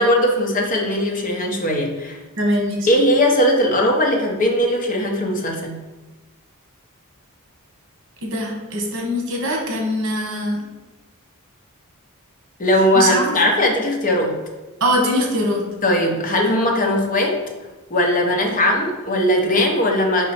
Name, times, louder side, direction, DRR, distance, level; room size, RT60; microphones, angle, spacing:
voice 1, 0.0-2.2 2.9-5.8 12.6-14.4 15.8-17.4 17.9-20.3, left 1 dB, 35° left, 1 dB, 0.9 m, -19 dB
voice 2, 2.4-2.9 8.2-10.6 12.9-13.4 14.8-15.6, equal, 60° right, 1 dB, 1.2 m, -22 dB
5.2 x 4.2 x 4.3 m, 1.1 s
head